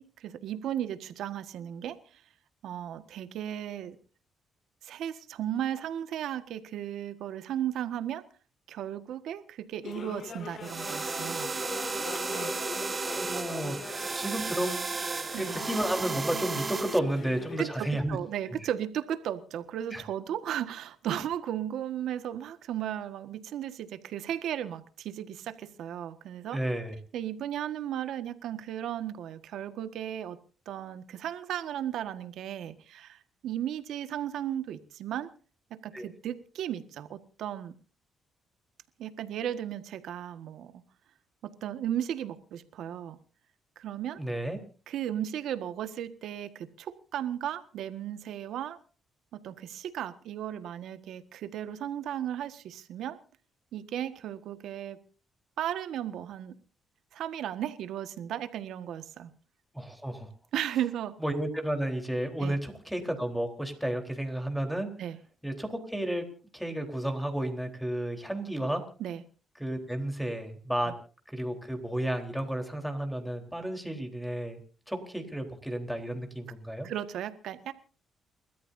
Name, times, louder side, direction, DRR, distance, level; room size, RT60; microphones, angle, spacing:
voice 1, 0.2-2.2 2.6-4.0 4.8-8.2 8.7-11.5 12.3-12.5 12.8-13.1 15.3-15.5 17.6-26.6 27.1-30.4 30.6-35.3 35.7-37.7 39.0-40.7 41.4-43.2 43.7-44.2 44.9-48.8 49.3-53.2 53.7-55.0 55.6-56.6 57.1-59.3 60.5-61.1 62.4-62.5 65.0-65.2 69.0-69.2 76.8-77.7, right 10 dB, 80° right, 10 dB, 1.6 m, -35 dB
sound 1, 9.8-17.6, left 5 dB, 55° left, 2.1 m, -42 dB
sound 2, 10.6-17.0, right 4 dB, 30° right, 0.6 m, -34 dB
voice 2, 13.1-13.8 14.1-14.8 15.3-18.2 18.5-18.6 19.9-20.0 26.5-27.0 35.9-36.1 44.2-44.6 59.7-60.3 61.2-64.9 65.4-66.3 66.5-68.8 69.6-70.9 71.3-74.6 74.9-76.9, right 1 dB, ahead, 4 dB, 3.9 m, -32 dB
29.5 x 13.5 x 2.7 m, 0.38 s
cardioid pair, 90°, 0 cm